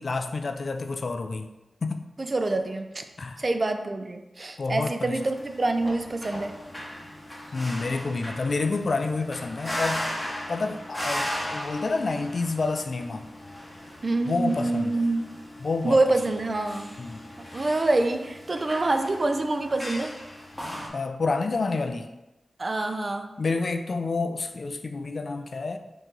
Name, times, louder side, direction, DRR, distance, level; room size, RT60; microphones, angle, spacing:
voice 1, 0.0-1.5 1.8-2.1 3.2-3.4 4.6-5.2 7.5-10.0 10.5-13.3 14.3-14.9 15.6-16.0 17.0-17.2 20.9-22.1 23.4-25.8, left 3 dB, 50° left, 7 dB, 0.3 m, -29 dB
voice 2, 2.2-3.0 3.4-6.6 14.0-15.3 15.8-17.0 17.4-20.2 22.6-23.3, right 2 dB, 35° right, 7 dB, 0.3 m, -26 dB
sound 1, 5.2-20.9, left 1 dB, 15° left, 0.8 m, -37 dB
4.5 x 3.0 x 3.8 m, 1.0 s
wide cardioid pair, 150°, 0 cm